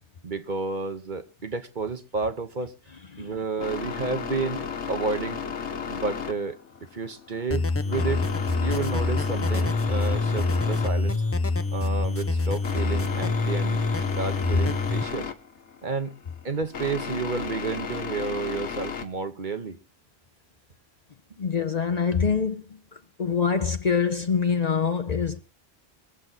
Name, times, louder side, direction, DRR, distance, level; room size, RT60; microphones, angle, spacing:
voice 1, 0.2-2.7 3.2-5.4 5.9-6.6 6.9-8.3 8.6-11.2 11.7-13.9 14.2-15.3 15.8-16.1 16.4-19.8, right 4 dB, 45° right, 1.1 m, -31 dB
sound 1, 3.6-19.1, left 6 dB, 80° left, 1.4 m, -34 dB
sound 2, 7.5-15.0, left 3 dB, 20° left, 0.4 m, -26 dB
voice 2, 21.4-25.4, left 6 dB, 40° left, 0.8 m, -25 dB
22.5 x 7.7 x 4.0 m
omnidirectional pair, 1.1 m